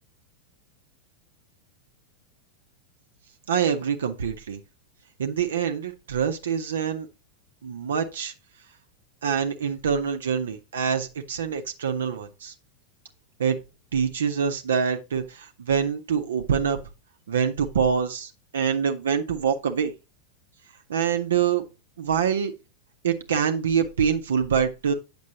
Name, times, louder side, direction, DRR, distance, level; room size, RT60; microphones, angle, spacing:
voice 1, 3.5-4.6 5.2-7.1 7.6-8.3 9.2-12.5 13.4-13.6 13.9-16.8 17.3-19.9 20.9-21.6 22.0-22.5 23.0-24.9, right 7 dB, 65° right, 0.6 m, -25 dB
8.4 x 6.0 x 2.8 m
figure-of-eight pair, 90°, 0 cm